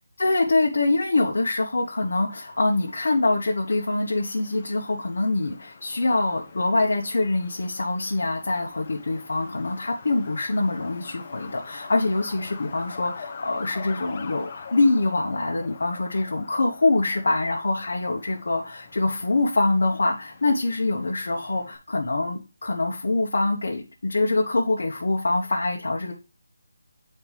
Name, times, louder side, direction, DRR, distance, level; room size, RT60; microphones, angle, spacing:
voice 1, 0.2-26.1, left 2 dB, 70° left, 0 dB, 1.0 m, -24 dB
Truck, 1.8-21.8, left 5 dB, 30° left, 0.7 m, -44 dB
7.2 x 4.3 x 3.2 m, 0.31 s
figure-of-eight pair, 170°, 0 cm